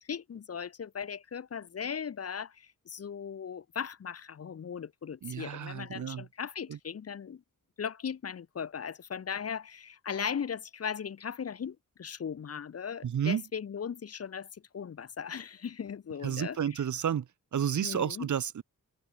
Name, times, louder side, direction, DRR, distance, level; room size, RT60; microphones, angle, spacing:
voice 1, 0.0-7.4 7.8-16.8 17.8-18.3, left 7 dB, 45° left, 0.7 m, -38 dB
voice 2, 5.2-6.3 6.7-6.8 13.0-13.4 16.2-17.3 17.5-18.6, right 9 dB, 55° right, 0.8 m, -31 dB
wide cardioid pair, 145°, 34 cm